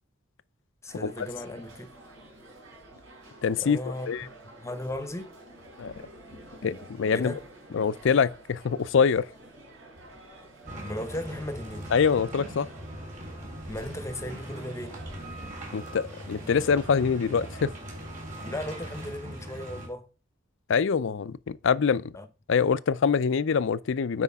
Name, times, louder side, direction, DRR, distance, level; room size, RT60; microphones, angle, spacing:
voice 1, 0.8-2.0 3.6-5.3 7.1-7.5 10.8-11.9 13.7-15.5 18.4-20.1 22.1-22.3, left 1 dB, 15° left, 0.9 m, -37 dB
sound 1, 0.9-19.0, right 1 dB, 75° right, 4.0 m, -50 dB
voice 2, 3.4-3.8 4.1-4.3 5.8-5.9 6.6-7.3 7.7-9.3 11.9-12.7 15.7-17.7 20.7-22.1 22.5-24.2, left 6 dB, 65° left, 0.4 m, -24 dB
sound 2, 10.6-19.9, right 1 dB, 40° right, 3.7 m, -40 dB
9.7 x 5.0 x 3.5 m
head